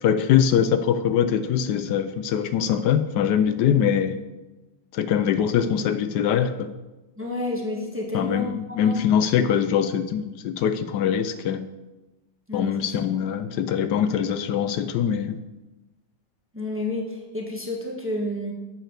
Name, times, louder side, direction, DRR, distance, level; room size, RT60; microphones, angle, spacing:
voice 1, 0.0-4.2 4.9-6.7 8.1-11.6 12.5-15.4, left 8 dB, 80° left, 11 dB, 1.1 m, -23 dB
voice 2, 7.2-9.0 12.5-13.0 16.5-18.5, left 2 dB, 10° right, -1 dB, 1.1 m, -30 dB
9.0 x 5.6 x 6.5 m, 1.1 s
omnidirectional pair, 1.8 m